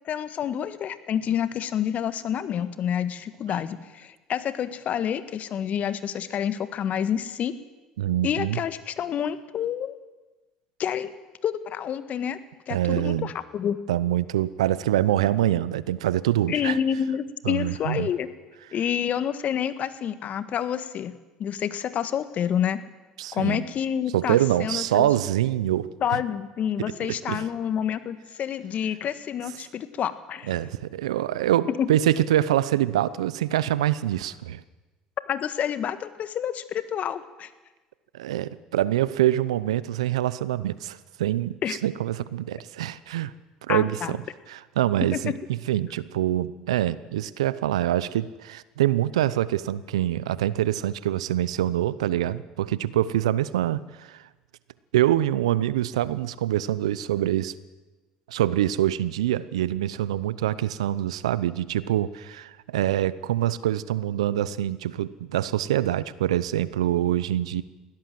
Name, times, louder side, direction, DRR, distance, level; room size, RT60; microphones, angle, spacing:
voice 1, 0.0-7.5 8.2-10.0 10.8-11.1 11.4-12.4 12.7-13.8 16.5-18.3 18.7-22.8 23.3-25.1 26.0-30.5 31.8-31.9 35.3-37.5 41.6-41.8 43.7-44.2 45.1-45.3, left 9 dB, 50° left, 12 dB, 1.6 m, -28 dB
voice 2, 8.0-8.6 12.7-13.3 13.9-16.8 17.4-18.1 23.2-23.6 24.1-26.2 27.3-27.5 30.5-34.6 38.1-43.3 43.7-44.2 44.5-45.3 45.7-54.2 54.9-57.5 58.3-67.6, right 12 dB, 90° right, 18 dB, 0.7 m, -25 dB
20.5 x 16.5 x 7.7 m, 1.2 s
hypercardioid pair, 70°, 3 cm